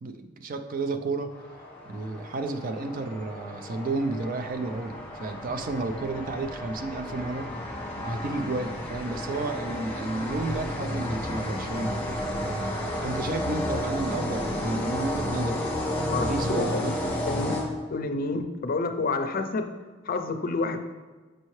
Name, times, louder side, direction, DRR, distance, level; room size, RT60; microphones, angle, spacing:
voice 1, 0.0-1.3 1.8-7.5 8.0-15.6 16.1-17.1, right 2 dB, 45° right, 8 dB, 0.4 m, -32 dB
sound 1, 1.3-18.1, left 1 dB, 5° left, 1.3 m, -32 dB
voice 2, 16.1-16.9 17.2-17.6 17.9-19.7 20.0-20.8, left 3 dB, 45° left, 7 dB, 0.5 m, -29 dB
6.2 x 5.4 x 3.2 m, 1.3 s
head